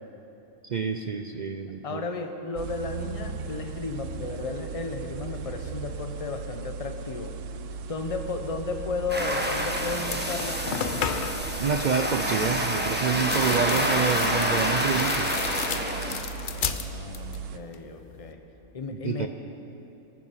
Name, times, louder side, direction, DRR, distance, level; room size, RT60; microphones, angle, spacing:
voice 1, 0.6-2.1 11.6-15.4 18.9-19.3, right 6 dB, 60° right, 6 dB, 0.5 m, -28 dB
voice 2, 1.8-7.3 7.9-10.6 16.5-18.4 18.7-19.3, left 3 dB, 30° left, 5 dB, 0.9 m, -34 dB
sound 1, 2.6-17.6, right 5 dB, 75° right, 1.0 m, -38 dB
sound 2, 9.1-16.2, equal, 10° right, 1.2 m, -28 dB
sound 3, 9.6-9.7 10.0-11.5 12.9-17.4 17.7-18.3, left 7 dB, 55° left, 0.6 m, -34 dB
19.0 x 9.6 x 5.7 m, 2.9 s
omnidirectional pair, 1.3 m